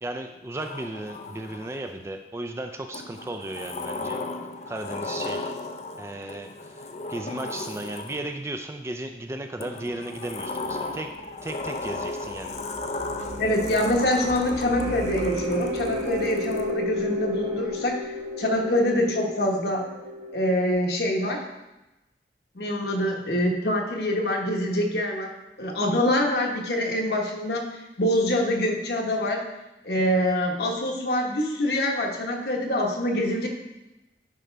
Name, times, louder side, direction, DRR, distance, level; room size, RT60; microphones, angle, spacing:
voice 1, 0.0-4.2 4.7-5.5 6.0-6.7 7.1-12.6, right 1 dB, 15° right, 6 dB, 0.4 m, -35 dB
Sliding door, 0.6-2.0 2.9-8.5 9.6-16.7, left 3 dB, 40° left, 0.5 m, -36 dB
sound 1, 10.5-20.7, left 1 dB, 90° right, 2.2 m, -33 dB
voice 2, 13.4-18.0 18.4-19.9 20.3-21.4 22.5-25.3 25.6-29.4 29.8-33.5, left 1 dB, 65° left, 1 dB, 1.2 m, -25 dB
10.5 x 5.0 x 3.4 m, 0.99 s
head